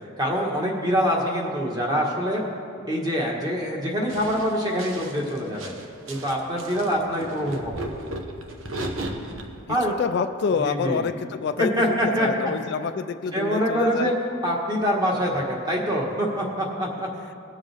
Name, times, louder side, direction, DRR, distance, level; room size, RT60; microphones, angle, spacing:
voice 1, 0.2-2.4 2.9-5.7 6.1-8.0 9.7-9.9 10.6-11.0 11.6-12.3 13.3-14.1 14.4-17.1, equal, 20° right, -2 dB, 1.6 m, -25 dB
sound 1, 4.1-9.5 10.0-10.1, right 1 dB, 75° right, 1.1 m, -35 dB
voice 2, 9.7-14.1, left 5 dB, 55° left, 10 dB, 0.3 m, -27 dB
19.5 x 7.3 x 3.5 m, 2.5 s
head